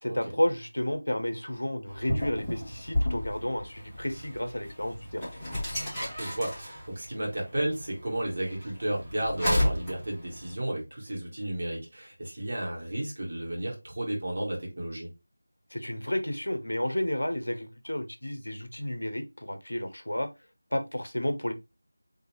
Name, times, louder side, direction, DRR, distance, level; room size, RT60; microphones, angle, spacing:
voice 1, 0.0-5.3 15.7-20.3 20.7-21.5, left 1 dB, 75° left, 0.8 m, -31 dB
sound 1, 1.9-10.5, left 1 dB, 5° left, 1.4 m, -33 dB
voice 2, 5.8-15.1, right 1 dB, 45° right, 1.9 m, -33 dB
3.8 x 3.3 x 3.0 m
figure-of-eight pair, 170°, 0 cm